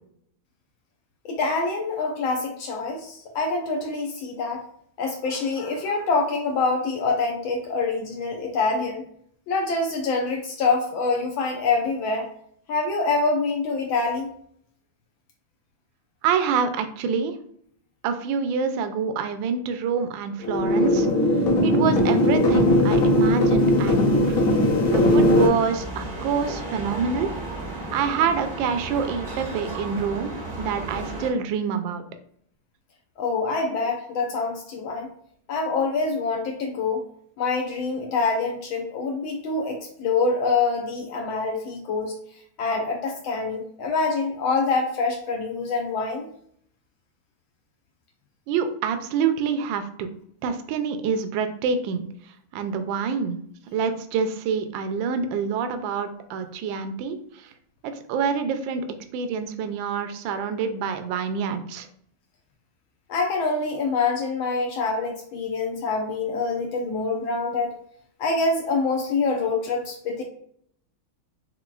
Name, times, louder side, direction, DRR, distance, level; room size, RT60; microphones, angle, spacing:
voice 1, 1.2-4.6 5.0-9.0 9.5-12.3 12.7-14.3 33.2-35.1 35.5-37.0 37.4-42.1 42.6-46.3 63.1-67.7 68.2-70.2, left 4 dB, 75° left, 2 dB, 1.4 m, -25 dB
voice 2, 16.2-17.4 18.0-21.1 21.6-24.4 24.9-27.3 27.9-30.3 30.6-32.0 48.5-50.1 50.4-52.0 52.5-53.4 53.7-57.5 57.8-58.9 59.1-61.9, right 6 dB, 75° right, 8 dB, 1.2 m, -26 dB
sound 1, 20.4-25.5, left 1 dB, 50° left, 1.3 m, -19 dB
sound 2, 25.4-31.3, right 2 dB, 40° right, 0.7 m, -34 dB
5.9 x 3.6 x 2.4 m, 0.65 s
omnidirectional pair, 2.4 m